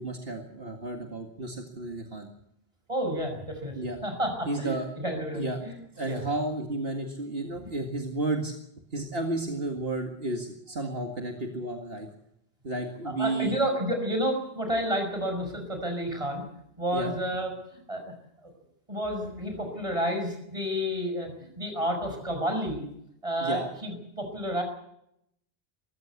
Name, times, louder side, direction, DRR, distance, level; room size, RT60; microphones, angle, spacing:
voice 1, 0.0-2.3 3.8-4.0 4.5-4.9 5.3-5.6 6.0-8.5 8.9-12.1 12.6-13.6 16.9-17.1 23.4-23.7, right 2 dB, 70° right, 3 dB, 2.2 m, -32 dB
voice 2, 2.9-3.8 4.0-5.7 6.0-6.2 7.6-7.7 13.0-16.4 16.8-17.5 17.9-18.1 18.4-18.5 18.9-22.8 23.2-24.6, equal, 30° right, 4 dB, 5.9 m, -30 dB
23.0 x 14.5 x 8.3 m, 0.76 s
omnidirectional pair, 1.0 m